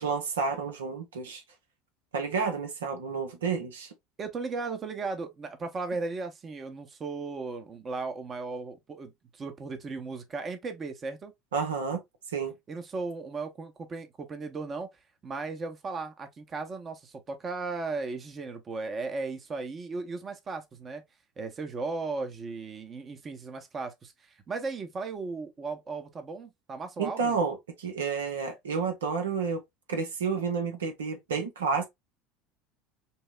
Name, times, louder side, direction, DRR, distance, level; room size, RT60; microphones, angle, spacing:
voice 1, 0.0-1.4 2.1-3.9 11.5-12.0 12.3-12.5 27.0-29.6 29.9-31.9, right 5 dB, 80° right, 0.7 m, -30 dB
voice 2, 4.2-11.3 12.7-14.9 15.2-21.0 21.4-27.4, right 3 dB, 35° right, 0.8 m, -36 dB
5.4 x 2.1 x 2.3 m
hypercardioid pair, 75°, 0 cm